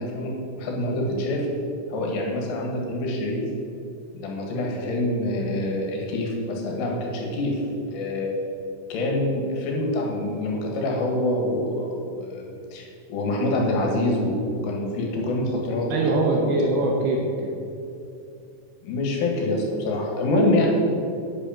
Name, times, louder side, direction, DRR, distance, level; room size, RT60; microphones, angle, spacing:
voice 1, 0.0-1.5 1.9-3.5 4.1-7.6 7.9-8.3 8.9-14.4 14.6-16.6 18.8-20.7, left 1 dB, 70° left, 0 dB, 4.2 m, -26 dB
voice 2, 15.9-17.5 20.3-20.7, right 2 dB, 75° right, -1 dB, 2.5 m, -23 dB
9.9 x 8.4 x 7.1 m, 2.7 s
omnidirectional pair, 6.0 m